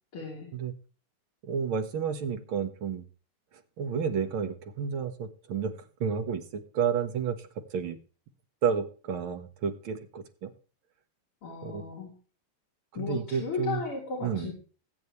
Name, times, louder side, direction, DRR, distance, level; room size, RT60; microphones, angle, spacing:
voice 1, 0.1-0.5 11.4-12.1 13.0-14.5, left 5 dB, 75° left, -2 dB, 4.0 m, -35 dB
voice 2, 1.4-3.0 3.8-5.7 6.0-8.0 8.6-10.5 11.6-11.8 12.9-13.8 14.2-14.5, right 7 dB, 70° right, 7 dB, 2.1 m, -31 dB
21.0 x 8.4 x 3.2 m, 0.38 s
omnidirectional pair, 2.4 m